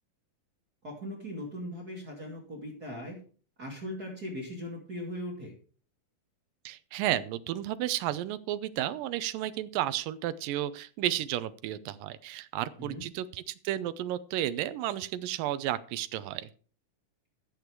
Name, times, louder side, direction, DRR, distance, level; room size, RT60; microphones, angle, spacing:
voice 1, 0.8-3.2 3.6-5.5 12.8-13.1, left 1 dB, 30° right, -1 dB, 2.4 m, -39 dB
voice 2, 6.7-16.5, right 13 dB, 75° right, 14 dB, 2.2 m, -32 dB
13.5 x 8.4 x 4.6 m, 0.41 s
omnidirectional pair, 4.3 m